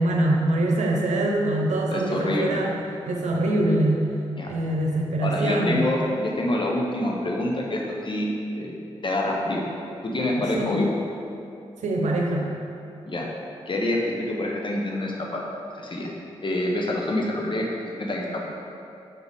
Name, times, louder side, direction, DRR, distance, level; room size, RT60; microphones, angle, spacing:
voice 1, 0.0-2.7 3.1-4.1 4.5-5.9 10.4-10.9 11.8-12.5, right 1 dB, 80° right, 0 dB, 0.8 m, -23 dB
voice 2, 1.9-2.6 4.4-4.5 5.2-8.3 8.6-8.7 9.0-9.7 10.0-10.8 13.1-13.3 13.7-15.4 15.7-16.1 16.4-17.7 18.0-18.4, left 1 dB, 45° left, -1 dB, 1.2 m, -26 dB
5.8 x 3.9 x 5.3 m, 2.7 s
supercardioid pair, 40°, 12 cm